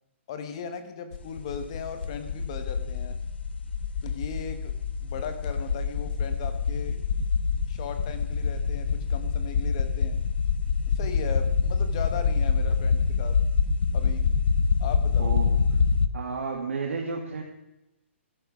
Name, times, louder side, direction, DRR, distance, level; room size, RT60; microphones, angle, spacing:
voice 1, 0.3-3.2 4.0-4.7 5.0-7.0 7.7-10.2 10.9-13.4 13.9-14.3 14.8-15.4, left 7 dB, 25° left, 9 dB, 1.1 m, -37 dB
sound 1, 1.1-16.1, left 5 dB, 55° left, 0.9 m, -26 dB
voice 2, 15.2-15.6 16.1-17.4, right 4 dB, 85° right, -1 dB, 2.2 m, -31 dB
12.5 x 11.0 x 6.1 m, 0.92 s
hypercardioid pair, 180°, 7 cm